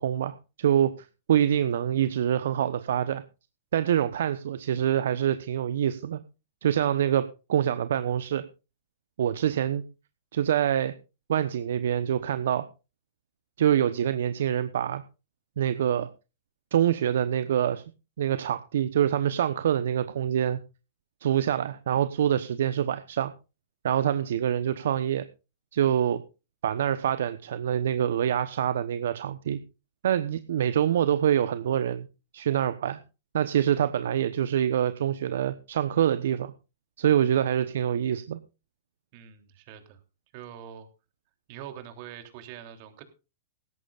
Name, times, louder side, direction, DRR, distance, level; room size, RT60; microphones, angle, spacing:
voice 1, 0.0-3.2 3.7-6.2 6.6-8.4 9.2-9.8 10.3-10.9 11.3-12.7 13.6-15.0 15.6-16.1 16.7-17.8 18.2-20.6 21.2-23.3 23.8-25.2 25.7-26.2 26.6-29.6 30.0-32.1 32.3-33.0 33.3-36.5 37.0-38.4, right 10 dB, 65° right, 12 dB, 1.0 m, -25 dB
voice 2, 39.1-40.0 40.3-40.9 41.5-43.0, right 10 dB, 50° right, 7 dB, 3.3 m, -44 dB
17.5 x 14.0 x 2.5 m, 0.31 s
hypercardioid pair, 110°, 0 cm